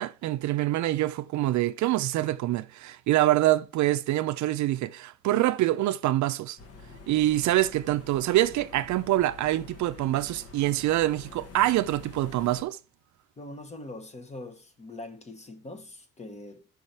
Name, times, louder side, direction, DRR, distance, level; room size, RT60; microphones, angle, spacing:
voice 1, 0.0-6.6 7.1-12.8, right 15 dB, 70° right, 0.5 m, -25 dB
sound 1, 6.6-12.6, left 4 dB, 50° left, 1.1 m, -47 dB
voice 2, 13.4-16.7, left 2 dB, 20° left, 0.8 m, -42 dB
5.4 x 4.8 x 4.2 m
cardioid pair, 150°, 31 cm